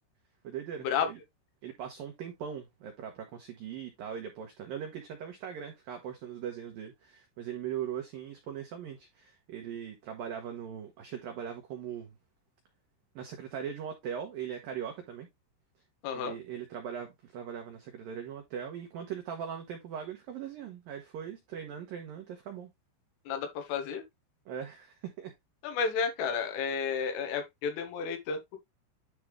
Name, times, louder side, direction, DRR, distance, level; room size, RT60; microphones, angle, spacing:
voice 1, 0.4-1.2 1.6-12.2 13.2-15.3 16.1-22.7 24.5-25.3, right 8 dB, 90° right, 2.0 m, -40 dB
voice 2, 16.0-16.4 23.3-24.0 25.6-28.6, left 6 dB, 80° left, 4.0 m, -32 dB
10.5 x 3.6 x 3.2 m
omnidirectional pair, 5.7 m